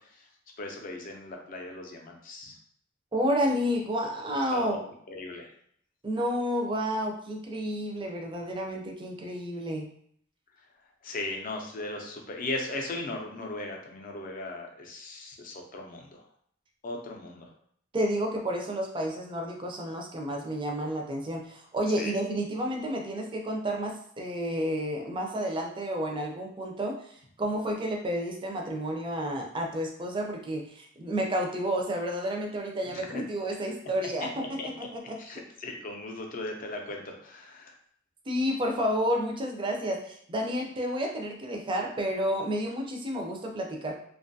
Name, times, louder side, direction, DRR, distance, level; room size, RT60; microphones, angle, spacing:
voice 1, 0.6-2.6 4.3-4.8 5.1-5.5 11.0-16.2 16.8-17.5 22.0-22.1 32.9-33.2 34.2-34.7 35.2-37.7, left 2 dB, 45° left, 2 dB, 0.5 m, -38 dB
voice 2, 3.1-4.8 6.0-9.9 17.9-35.2 38.3-43.9, equal, 25° right, 1 dB, 0.4 m, -30 dB
2.5 x 2.3 x 2.6 m, 0.63 s
head